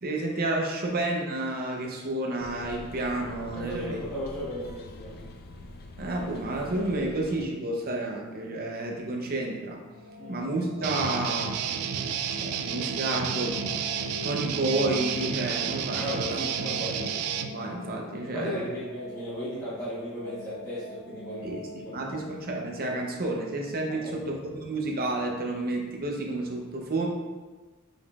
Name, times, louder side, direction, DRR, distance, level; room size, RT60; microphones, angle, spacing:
voice 1, 0.0-4.0 6.0-9.8 10.3-11.5 12.4-13.6 14.2-16.2 17.5-18.7 21.4-21.6 21.9-27.1, right 2 dB, 45° right, 0 dB, 0.7 m, -30 dB
sound 1, 2.4-7.5, left 2 dB, 45° left, 0.3 m, -44 dB
voice 2, 3.5-5.2 10.2-10.4 15.9-17.0 18.3-22.1 23.9-24.2, equal, 15° left, -11 dB, 1.1 m, -36 dB
sound 2, 9.6-24.5, left 1 dB, 80° left, 1.1 m, -43 dB
Guitar, 10.8-17.5, right 8 dB, 90° right, 0.3 m, -31 dB
5.3 x 3.7 x 2.4 m, 1.3 s
head